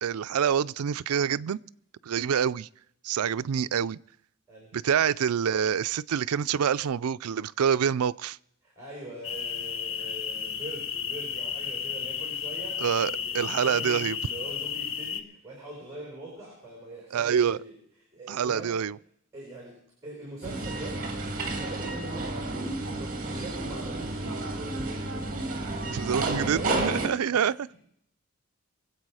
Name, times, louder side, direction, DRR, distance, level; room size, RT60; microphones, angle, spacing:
voice 1, 0.0-1.6 2.0-2.7 3.0-4.0 4.7-8.4 12.8-14.2 17.1-17.6 18.3-19.0 25.9-27.5, right 8 dB, 90° right, 0.4 m, -26 dB
voice 2, 8.6-17.8 18.1-18.8 19.3-21.1 21.5-25.3 26.0-27.5, right 1 dB, 15° right, 4.5 m, -43 dB
sound 1, 9.2-15.2, left 7 dB, 60° left, 0.9 m, -33 dB
sound 2, 20.4-27.1, right 2 dB, 40° right, 2.1 m, -31 dB
23.5 x 8.2 x 4.8 m
head